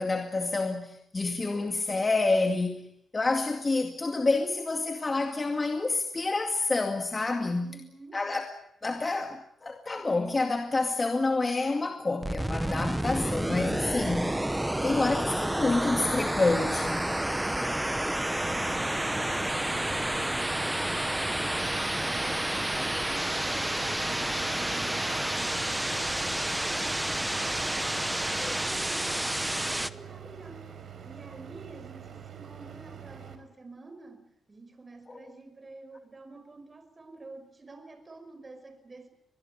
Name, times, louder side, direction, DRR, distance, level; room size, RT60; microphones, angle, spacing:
voice 1, 0.0-7.7 8.1-8.5 8.8-14.4 14.8-17.1 19.4-19.6 28.4-28.5, left 3 dB, 25° left, 2.2 m, -28 dB
voice 2, 7.6-8.2 19.4-21.6 22.0-26.5 26.8-30.8 31.0-39.1, right 3 dB, 25° right, 5.3 m, -49 dB
sound 1, 12.2-29.9, right 1 dB, 10° right, 1.0 m, -30 dB
sound 2, 18.3-33.4, right 8 dB, 60° right, 4.6 m, -45 dB
24.5 x 20.5 x 9.0 m
cardioid pair, 100°, 0 cm